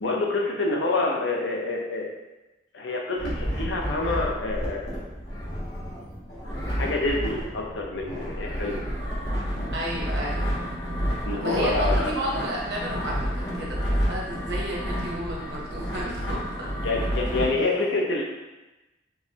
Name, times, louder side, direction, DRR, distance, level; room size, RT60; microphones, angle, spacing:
voice 1, 0.0-2.1 2.7-5.0 6.7-8.8 11.3-12.2 16.8-18.2, left 2 dB, 90° left, 0 dB, 0.6 m, -27 dB
sound 1, 3.2-17.5, equal, 65° left, 1.2 m, -30 dB
voice 2, 9.7-10.5 11.4-13.3 13.6-16.7, equal, 65° right, -4 dB, 0.9 m, -31 dB
4.7 x 2.1 x 2.8 m, 1.1 s
head